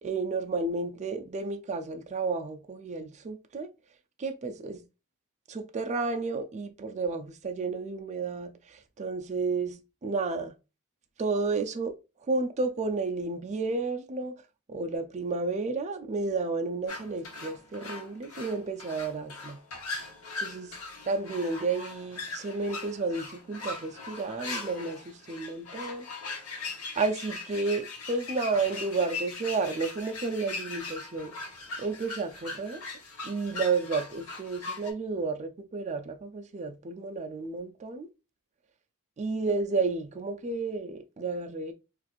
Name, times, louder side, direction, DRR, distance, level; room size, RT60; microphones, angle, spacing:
voice 1, 0.0-3.7 4.2-4.8 5.5-10.5 11.2-11.9 12.3-14.3 14.7-19.6 20.4-20.7 21.1-26.1 26.6-26.7 27.0-31.3 31.8-32.8 33.2-38.1 39.2-41.7, right 3 dB, 30° right, 0.4 m, -31 dB
sound 1, 16.9-34.9, left 3 dB, 75° left, 1.2 m, -40 dB
4.1 x 2.5 x 2.3 m
head